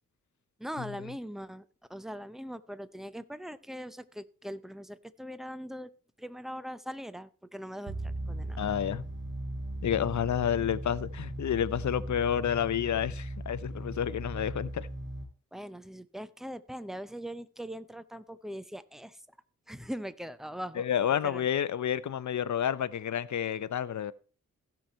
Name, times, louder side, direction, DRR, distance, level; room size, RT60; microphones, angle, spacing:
voice 1, 0.6-1.6 1.9-5.9 6.2-8.6 15.5-19.2 19.7-20.9 21.2-21.5, equal, ahead, 0.7 m, -41 dB
sound 1, 7.9-15.3, right 1 dB, 35° right, 3.5 m, -38 dB
voice 2, 8.6-9.0 9.8-14.9 20.8-24.1, left 9 dB, 60° left, 0.7 m, -30 dB
16.0 x 5.9 x 4.4 m
cardioid pair, 85°, 32 cm